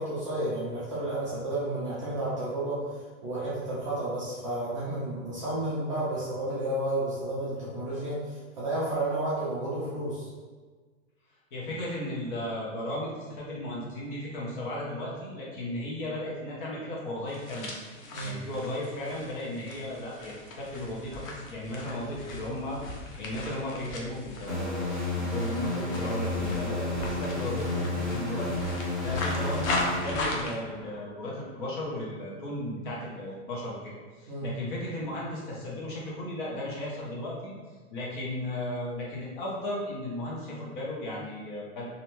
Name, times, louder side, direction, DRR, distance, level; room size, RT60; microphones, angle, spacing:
voice 1, 0.0-2.8 3.2-10.3 18.1-18.3 34.3-34.5, right 1 dB, 25° right, -9 dB, 0.4 m, -31 dB
voice 2, 11.5-17.7 18.2-37.5 37.9-41.9, left 1 dB, 40° left, -4 dB, 0.8 m, -35 dB
sound 1, 17.3-30.5, left 2 dB, 85° left, 0.8 m, -38 dB
sound 2, 24.5-31.0, left 2 dB, ahead, 0.8 m, -31 dB
2.6 x 2.2 x 3.0 m, 1.4 s
hypercardioid pair, 155°, 40 cm